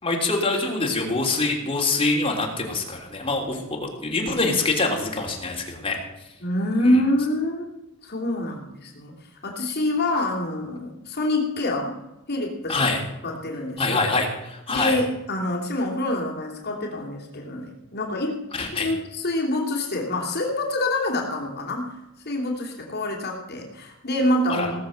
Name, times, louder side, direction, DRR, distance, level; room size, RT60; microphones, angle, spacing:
voice 1, 0.0-6.0 6.8-7.0 12.7-13.0 13.8-15.0 18.5-18.9 24.5-24.7, left 3 dB, 25° left, 0 dB, 3.1 m, -25 dB
voice 2, 6.4-7.7 8.0-9.1 9.4-12.0 12.3-12.9 13.2-14.0 14.7-18.4 18.8-21.9 22.2-24.8, left 1 dB, 50° left, 0 dB, 3.0 m, -26 dB
18.5 x 7.2 x 7.8 m, 0.96 s
head